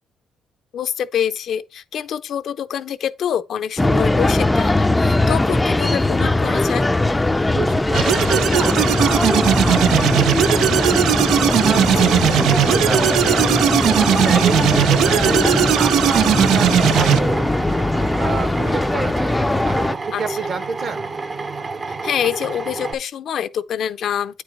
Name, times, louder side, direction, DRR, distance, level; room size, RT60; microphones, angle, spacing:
voice 1, 0.7-6.9 12.0-12.1 20.1-20.5 22.0-24.4, left 9 dB, 65° left, 0.5 m, -26 dB
sound 1, 3.8-19.9, left 2 dB, 15° left, 0.4 m, -20 dB
voice 2, 7.5-13.8 14.2-17.5 18.0-19.4 19.6-21.1, right 5 dB, 55° right, 1.5 m, -30 dB
sound 2, 7.9-17.2, right 10 dB, 85° right, 0.4 m, -18 dB
Drill, 16.9-22.9, right 3 dB, 35° right, 0.8 m, -30 dB
8.9 x 4.7 x 4.1 m
cardioid pair, 90°, 0 cm